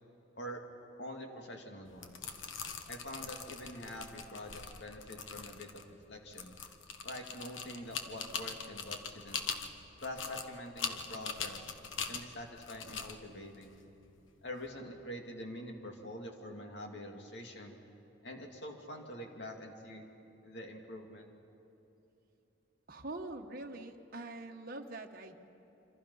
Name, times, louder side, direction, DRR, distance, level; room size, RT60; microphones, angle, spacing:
voice 1, 1.0-2.3 2.9-6.5 7.0-9.4 10.0-11.7 12.1-13.8 14.4-17.8 18.2-20.1 20.4-21.3, left 1 dB, 60° left, 2 dB, 2.5 m, -45 dB
sound 1, 1.9-14.6, left 6 dB, 85° left, 1.3 m, -43 dB
voice 2, 22.9-25.4, right 2 dB, 50° right, 2 dB, 1.4 m, -44 dB
26.5 x 26.0 x 5.6 m, 3.0 s
head